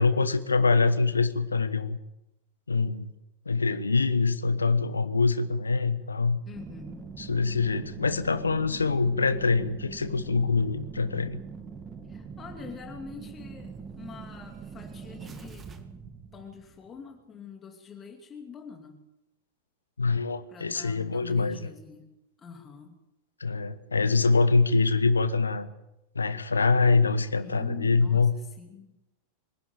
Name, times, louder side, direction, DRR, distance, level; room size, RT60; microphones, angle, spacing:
voice 1, 0.0-2.0 2.7-3.1 3.4-6.4 7.2-11.4 20.0-21.7 23.4-25.7 26.1-28.3, left 4 dB, 75° left, 13 dB, 1.3 m, -24 dB
voice 2, 6.4-7.1 12.1-15.7 16.3-19.0 20.5-22.1 22.4-23.0 27.4-29.0, left 6 dB, 20° left, 3 dB, 2.6 m, -45 dB
sound 1, 6.5-17.1 17.4-17.5, right 5 dB, 20° right, 2.2 m, -43 dB
25.0 x 11.5 x 9.2 m, 0.92 s
figure-of-eight pair, 90°, 0 cm